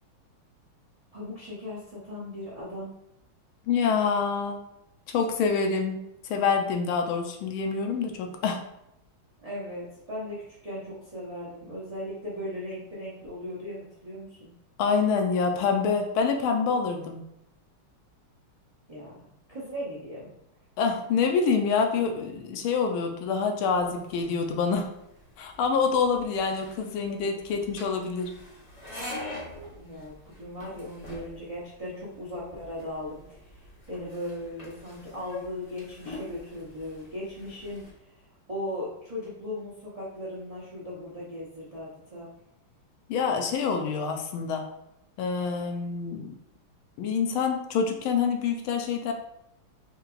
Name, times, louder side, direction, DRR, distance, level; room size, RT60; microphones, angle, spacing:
voice 1, 1.1-2.9 9.4-14.5 18.9-20.3 29.8-33.6 33.9-42.3, left 1 dB, 65° right, -8 dB, 0.3 m, -38 dB
voice 2, 3.7-4.6 5.1-8.6 14.8-17.2 20.8-24.9 25.4-28.3 43.1-44.7 45.2-46.3 47.0-49.1, left 5 dB, 80° left, 4 dB, 1.4 m, -26 dB
sound 1, 23.7-37.9, left 1 dB, 55° left, 0.4 m, -45 dB
4.5 x 2.8 x 2.4 m, 0.83 s
omnidirectional pair, 2.4 m